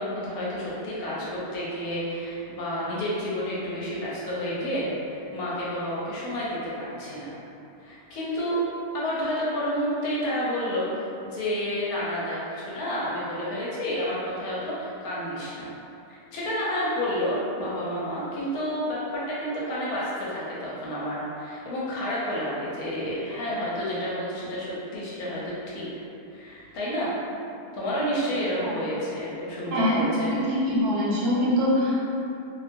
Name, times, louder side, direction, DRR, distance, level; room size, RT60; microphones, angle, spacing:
voice 1, 0.0-7.3 7.8-8.6 8.9-15.7 16.1-25.9 26.3-27.1 27.7-30.3, equal, 70° left, -7 dB, 1.0 m, -30 dB
voice 2, 29.7-30.0 30.3-32.0, left 1 dB, 75° right, -7 dB, 1.1 m, -23 dB
2.6 x 2.2 x 2.5 m, 2.8 s
omnidirectional pair, 1.8 m